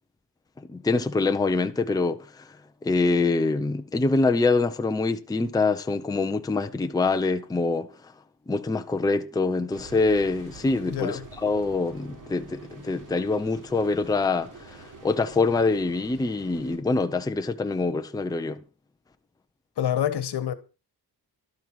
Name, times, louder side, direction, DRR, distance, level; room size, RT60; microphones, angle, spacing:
voice 1, 0.6-2.5 2.8-7.9 8.5-18.6, left 3 dB, 10° left, 0.6 m, -25 dB
sound 1, 9.7-16.8, right 4 dB, 50° right, 3.9 m, -47 dB
voice 2, 10.9-11.2 19.8-20.6, left 10 dB, 75° left, 1.4 m, -27 dB
12.0 x 9.5 x 4.7 m
wide cardioid pair, 160°, 40 cm